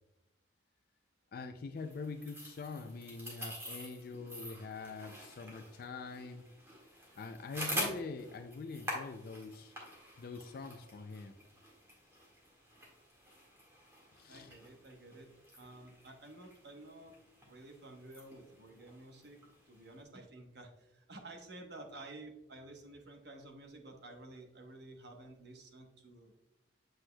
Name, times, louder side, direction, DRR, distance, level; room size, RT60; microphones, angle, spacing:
voice 1, 1.3-6.5 7.1-9.7 10.2-11.4 14.1-14.5, left 4 dB, 50° left, 7 dB, 0.4 m, -44 dB
sound 1, 1.8-20.0, equal, 15° right, 1.7 m, -47 dB
voice 2, 14.3-15.3 15.6-17.1 17.4-19.4 19.7-26.3, right 2 dB, 55° right, 3 dB, 1.1 m, -52 dB
7.9 x 6.0 x 2.2 m, 0.95 s
head